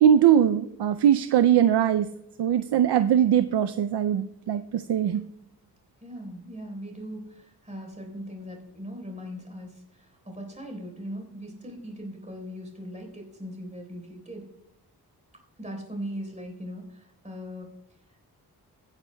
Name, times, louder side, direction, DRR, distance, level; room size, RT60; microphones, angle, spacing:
voice 1, 0.0-2.1 2.4-5.2, right 9 dB, 80° right, 10 dB, 0.5 m, -21 dB
voice 2, 6.0-14.4 15.6-17.7, equal, 20° right, 1 dB, 3.9 m, -39 dB
23.0 x 9.7 x 2.2 m, 0.83 s
wide cardioid pair, 115°, 40 cm